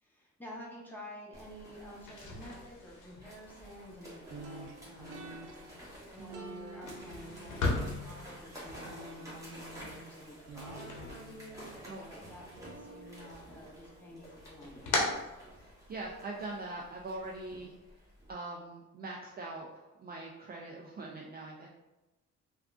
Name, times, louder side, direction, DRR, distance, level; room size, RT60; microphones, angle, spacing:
voice 1, 0.0-15.3 17.5-17.6, equal, 5° left, -4 dB, 0.9 m, -50 dB
sound 1, 1.3-18.3, equal, 10° right, 1.2 m, -52 dB
sound 2, 1.9-11.9 12.3-13.1 13.5-16.1, left 2 dB, 75° left, 0.8 m, -39 dB
sound 3, 4.3-15.3, right 2 dB, 90° right, 0.5 m, -50 dB
voice 2, 15.6-17.7 18.3-21.7, right 2 dB, 30° right, -2 dB, 0.4 m, -42 dB
3.4 x 2.3 x 2.5 m, 1.0 s
cardioid pair, 90°, 30 cm